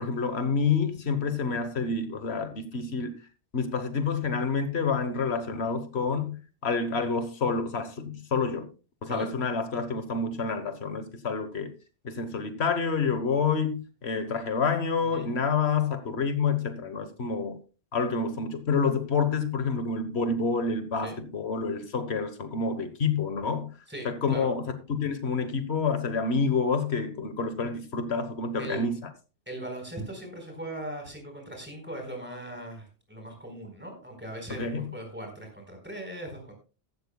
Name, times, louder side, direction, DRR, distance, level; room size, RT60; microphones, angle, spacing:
voice 1, 0.0-3.2 3.5-8.7 9.0-11.7 12.0-17.6 17.9-23.8 24.0-28.9 34.6-34.9, left 5 dB, 75° left, 1.4 m, -28 dB
voice 2, 15.0-15.4 21.0-21.2 23.9-24.5 28.6-28.8 29.5-36.5, right 1 dB, 10° right, 4.3 m, -39 dB
15.5 x 12.5 x 2.3 m
omnidirectional pair, 1.1 m